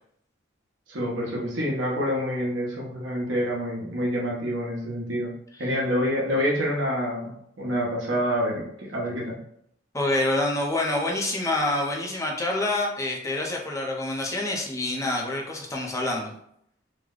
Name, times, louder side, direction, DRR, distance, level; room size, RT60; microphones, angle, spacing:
voice 1, 0.9-5.3 5.6-9.4, equal, 70° right, -4 dB, 1.0 m, -27 dB
voice 2, 9.9-16.3, left 2 dB, 15° left, -1 dB, 0.6 m, -27 dB
3.1 x 2.1 x 3.7 m, 0.72 s
head